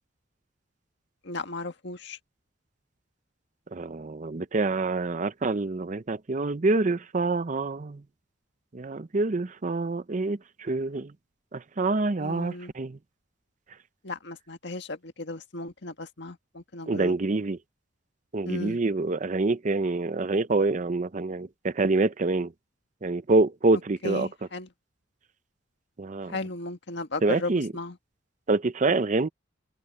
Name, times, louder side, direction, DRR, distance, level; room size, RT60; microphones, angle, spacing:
voice 1, 1.2-2.2 12.2-12.7 14.0-17.1 18.4-18.8 24.0-24.7 26.3-28.0, left 2 dB, 65° left, 1.8 m, -35 dB
voice 2, 3.7-8.0 8.7-11.1 11.5-13.0 16.9-17.6 18.3-22.5 23.0-24.3 26.0-26.4 27.2-27.7 28.5-29.3, right 3 dB, 40° right, 0.6 m, -26 dB
head